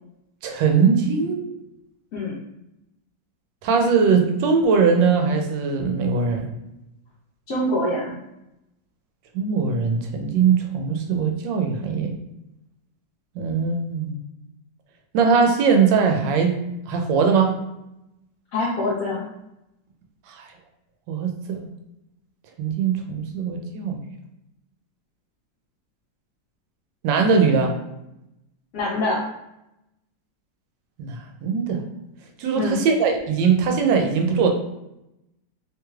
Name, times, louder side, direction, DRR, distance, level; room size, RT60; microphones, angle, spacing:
voice 1, 0.4-1.4 3.6-6.5 9.3-12.1 13.4-14.1 15.1-16.5 16.9-17.6 20.3-20.5 21.1-21.7 22.6-24.0 27.0-27.7 31.0-31.8 32.4-34.5, right 5 dB, 85° right, 3 dB, 1.3 m, -20 dB
voice 2, 7.5-8.1 18.5-19.3 28.7-29.2 32.6-32.8, left 1 dB, 65° left, -5 dB, 0.9 m, -24 dB
3.1 x 3.1 x 2.3 m, 0.87 s
omnidirectional pair, 1.9 m